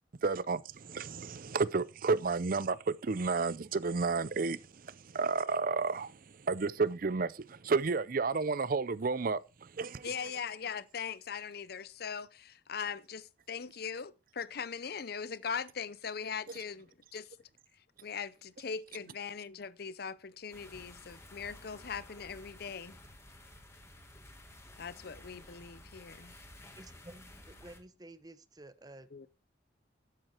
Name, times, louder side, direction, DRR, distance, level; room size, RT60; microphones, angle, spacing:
voice 1, 0.1-10.3 16.5-16.6, right 4 dB, 50° right, 0.6 m, -32 dB
voice 2, 10.0-17.4 18.0-23.0 24.8-26.3 29.1-29.3, left 6 dB, 60° left, 0.6 m, -40 dB
sound 1, 20.5-27.8, left 1 dB, 15° left, 2.2 m, -53 dB
voice 3, 26.8-29.3, right 1 dB, 20° right, 0.9 m, -52 dB
11.5 x 8.0 x 4.4 m
head